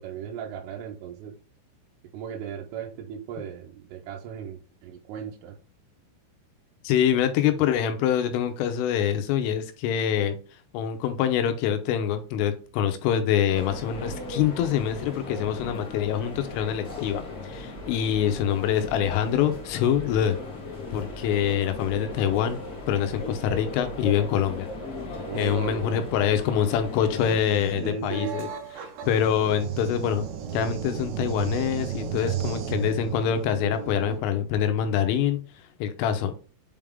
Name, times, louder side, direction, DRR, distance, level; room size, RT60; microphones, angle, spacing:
voice 1, 0.0-1.3 2.1-5.6 25.3-26.1 27.8-28.4, right 7 dB, 90° right, 0 dB, 3.3 m, -36 dB
voice 2, 6.8-10.4 10.7-20.4 20.9-22.6 22.9-24.7 25.3-28.5 28.8-30.3 30.5-35.4 35.8-36.3, left 9 dB, 85° left, 8 dB, 3.4 m, -25 dB
sound 1, 13.5-27.4, left 2 dB, 35° left, 1.6 m, -37 dB
sound 2, 27.2-34.2, right 9 dB, 75° right, 2.9 m, -34 dB
7.7 x 3.7 x 3.5 m, 0.35 s
omnidirectional pair, 5.7 m